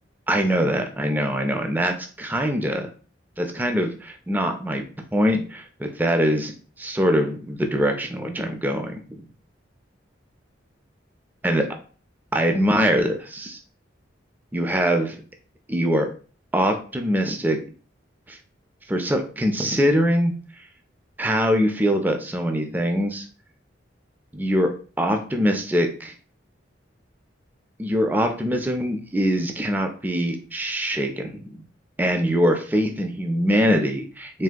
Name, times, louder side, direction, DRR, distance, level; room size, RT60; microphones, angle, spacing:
voice 1, 0.3-2.9 3.4-4.8 5.1-9.3 11.4-11.7 12.3-13.6 14.5-15.2 15.7-16.1 16.5-17.6 18.3-18.4 18.9-20.3 21.2-23.3 24.3-26.1 27.8-31.6 32.0-34.4, equal, 10° right, 4 dB, 0.3 m, -23 dB
3.3 x 2.6 x 2.2 m, 0.39 s
head